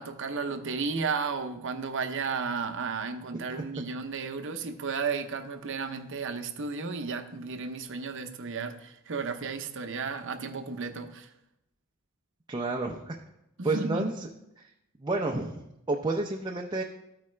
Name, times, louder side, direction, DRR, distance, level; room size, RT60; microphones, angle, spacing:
voice 1, 0.0-11.3 13.6-14.2, right 5 dB, 60° right, 6 dB, 0.7 m, -33 dB
voice 2, 12.5-13.2 13.6-14.2 14.6-14.7 15.0-16.8, right 2 dB, 20° right, 0 dB, 0.5 m, -30 dB
13.5 x 4.8 x 3.2 m, 0.85 s
head